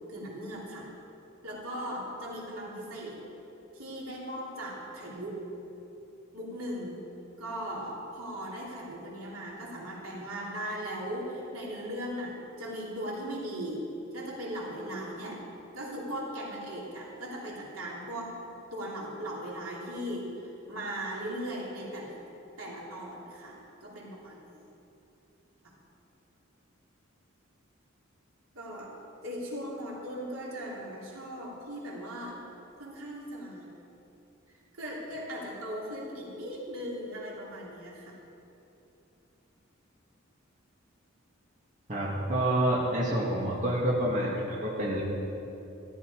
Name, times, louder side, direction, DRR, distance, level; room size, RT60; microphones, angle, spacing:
voice 1, 0.1-0.9 1.4-3.2 3.7-5.5 6.3-7.1 7.4-15.5 15.7-18.4 18.7-22.1 22.6-24.6 25.6-25.7 28.5-29.0 29.2-32.4 32.8-33.7 34.8-38.2, equal, 85° right, -4 dB, 3.2 m, -38 dB
voice 2, 41.9-45.0, right 1 dB, 40° right, -5 dB, 2.3 m, -28 dB
14.0 x 13.0 x 4.9 m, 2.9 s
head